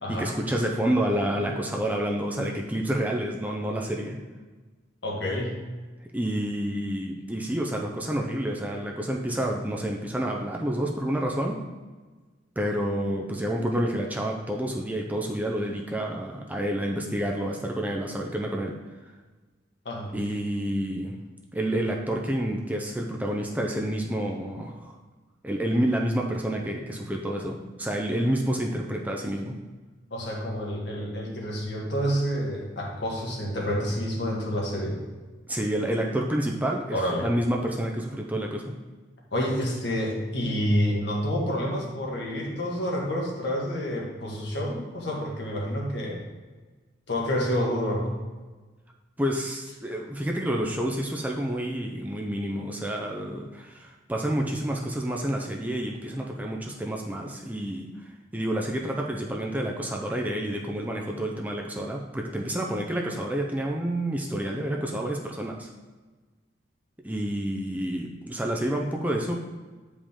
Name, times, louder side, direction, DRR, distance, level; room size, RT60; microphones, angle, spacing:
voice 1, 0.1-4.2 6.1-11.6 12.6-18.8 20.1-21.2 21.5-25.0 25.4-29.6 35.5-38.7 49.2-57.9 58.3-65.7 67.0-69.4, right 1 dB, 10° right, 0 dB, 0.5 m, -29 dB
voice 2, 5.0-5.6 19.9-20.1 30.1-35.0 36.9-37.3 39.3-46.2 47.1-48.2, equal, 60° left, -2 dB, 1.8 m, -28 dB
8.4 x 5.1 x 3.7 m, 1.3 s
head